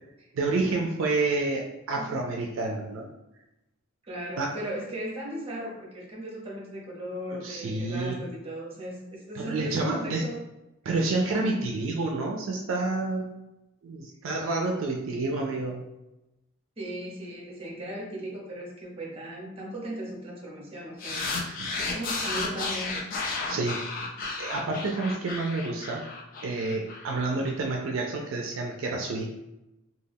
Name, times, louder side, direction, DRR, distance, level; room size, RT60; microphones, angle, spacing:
voice 1, 0.3-3.1 4.4-4.5 7.3-8.2 9.3-10.2 10.8-13.3 13.8-15.8 21.4-21.7 23.5-23.8 24.4-26.0 26.4-29.3, right 3 dB, 65° right, 0 dB, 0.4 m, -29 dB
voice 2, 4.0-10.4 16.8-21.3 21.8-23.1, right 1 dB, 30° right, -3 dB, 0.8 m, -37 dB
sound 1, 21.0-27.5, left 3 dB, 45° left, 0.4 m, -33 dB
2.3 x 2.3 x 3.3 m, 0.94 s
head